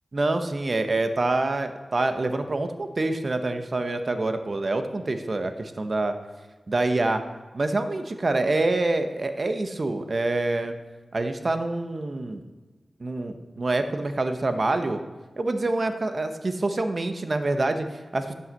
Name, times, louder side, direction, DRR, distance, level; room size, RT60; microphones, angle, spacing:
voice 1, 0.1-6.1 6.7-7.2 7.5-10.7 11.1-12.4 13.0-15.0 15.4-18.3, right 2 dB, 45° right, 8 dB, 0.9 m, -26 dB
11.0 x 5.7 x 7.5 m, 1.3 s
wide cardioid pair, 105°, 0 cm